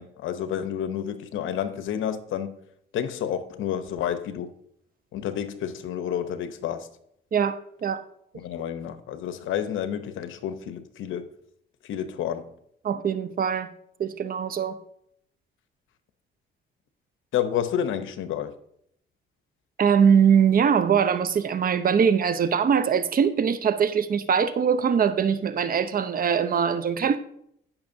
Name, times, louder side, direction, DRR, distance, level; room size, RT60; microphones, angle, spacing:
voice 1, 0.0-2.6 2.9-4.5 5.1-6.9 8.3-11.3 11.8-12.6 17.3-18.5, left 9 dB, 80° left, 0.8 m, -30 dB
voice 2, 12.8-13.7 14.0-14.8 19.8-27.2, right 7 dB, 45° right, 0.7 m, -22 dB
16.0 x 5.8 x 2.7 m
cardioid pair, 90°, 20 cm